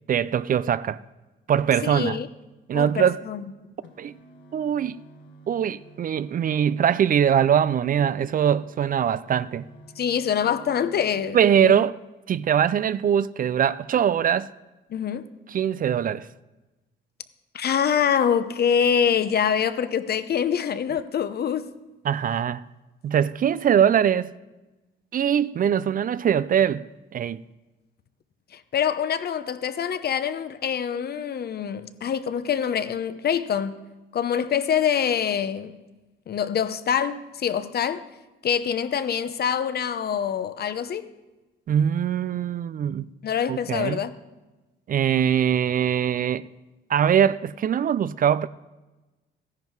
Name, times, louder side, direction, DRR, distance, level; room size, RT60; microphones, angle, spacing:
voice 1, 0.1-1.0 1.5-2.2 2.7-3.2 4.0-4.1 4.5-5.0 5.5-9.6 11.3-11.9 12.3-14.5 15.5-16.3 22.0-22.6 23.0-24.3 25.1-26.8 27.1-27.4 41.7-43.1 43.5-44.0 44.9-46.5 46.9-48.5, right 9 dB, 45° right, 0.4 m, -22 dB
voice 2, 1.8-2.3 2.7-3.4 10.0-11.4 11.6-11.7 14.9-15.3 17.5-21.7 28.5-33.8 34.1-35.8 36.3-38.0 38.4-41.0 43.2-44.1, left 8 dB, 55° left, 0.8 m, -25 dB
sound 1, 3.6-11.6, right 2 dB, 75° left, 1.4 m, -50 dB
14.0 x 10.5 x 4.7 m
cardioid pair, 90°, 20 cm